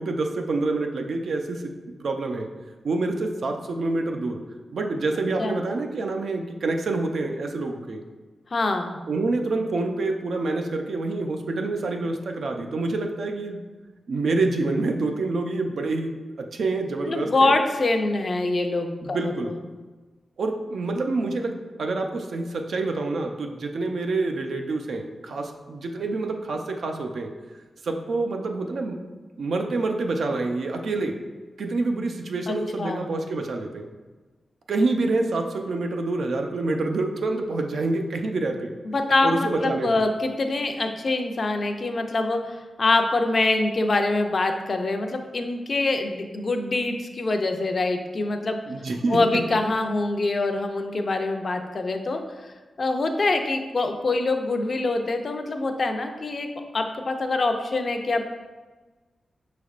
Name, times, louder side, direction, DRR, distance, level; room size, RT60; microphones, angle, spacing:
voice 1, 0.0-1.7 2.0-2.5 2.8-4.4 4.7-8.0 9.1-13.6 14.1-17.6 19.0-19.5 20.4-27.3 27.8-29.0 29.4-31.2 31.6-33.9 34.7-38.7 39.2-40.0 48.7-49.2, right 3 dB, 70° right, 3 dB, 0.4 m, -27 dB
voice 2, 8.5-9.0 17.1-19.3 32.5-33.1 38.8-48.6 49.1-56.5 56.7-58.3, left 2 dB, 45° left, 5 dB, 0.4 m, -25 dB
6.2 x 3.3 x 2.4 m, 1.3 s
wide cardioid pair, 125°, 0 cm